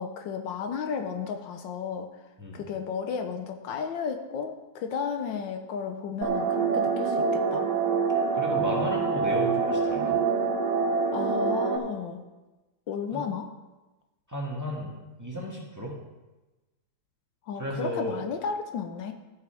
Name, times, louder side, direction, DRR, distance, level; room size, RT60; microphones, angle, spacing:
voice 1, 0.0-2.1 2.5-7.7 11.1-12.2 12.9-13.5 17.5-19.1, left 6 dB, 85° left, 6 dB, 1.6 m, -33 dB
sound 1, 6.2-11.8, right 5 dB, 70° right, 1.7 m, -25 dB
voice 2, 8.3-10.2 13.1-13.2 14.3-16.0 17.5-18.2, equal, 10° right, -3 dB, 1.6 m, -33 dB
13.0 x 9.4 x 3.4 m, 1.1 s
omnidirectional pair, 2.0 m